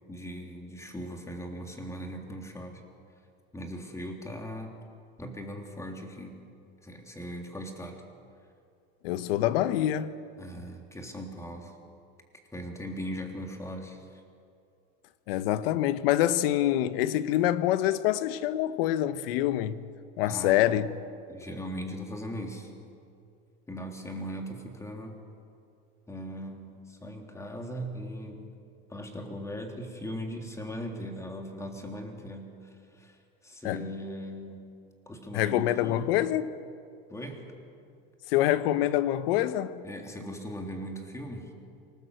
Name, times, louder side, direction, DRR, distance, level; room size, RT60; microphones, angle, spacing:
voice 1, 0.1-2.8 3.5-4.7 5.2-6.4 6.8-8.0 10.4-11.8 12.5-14.0 20.3-20.9 21.3-22.7 23.7-25.2 26.1-28.5 28.9-33.2 33.4-34.8 35.1-36.1 37.1-37.5 39.8-41.5, equal, 10° left, 3.5 m, -39 dB
voice 2, 9.0-10.1 15.3-19.8 20.2-20.9 33.6-33.8 35.3-36.5 38.3-39.8, left 13 dB, 80° left, 1.1 m, -26 dB
25.0 x 19.5 x 8.0 m
supercardioid pair, 120°, 29 cm